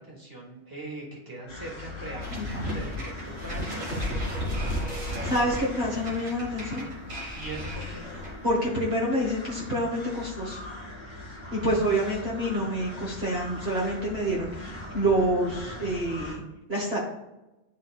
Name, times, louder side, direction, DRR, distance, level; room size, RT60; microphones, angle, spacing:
voice 1, 0.0-4.6 7.3-8.0, right 2 dB, 15° right, -3 dB, 1.9 m, -41 dB
sound 1, 1.5-16.4, left 2 dB, 20° left, 1.4 m, -41 dB
sound 2, 2.2-8.5, equal, 65° right, 2.1 m, -33 dB
voice 2, 2.3-2.8 5.0-6.9 8.4-10.6 11.5-16.4 16.7-17.0, right 1 dB, 45° right, -4 dB, 1.5 m, -27 dB
11.0 x 4.1 x 2.4 m, 0.99 s
omnidirectional pair, 1.5 m